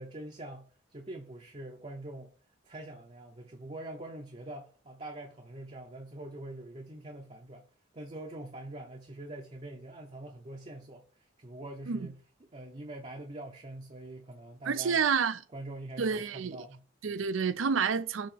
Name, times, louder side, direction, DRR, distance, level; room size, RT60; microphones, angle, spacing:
voice 1, 0.0-2.3 2.6-7.6 7.9-15.0 15.5-16.8, right 1 dB, 30° right, 0.6 m, -44 dB
voice 2, 14.7-15.4 16.0-16.6 17.0-18.3, right 6 dB, 80° right, 0.5 m, -29 dB
7.1 x 2.9 x 5.4 m
head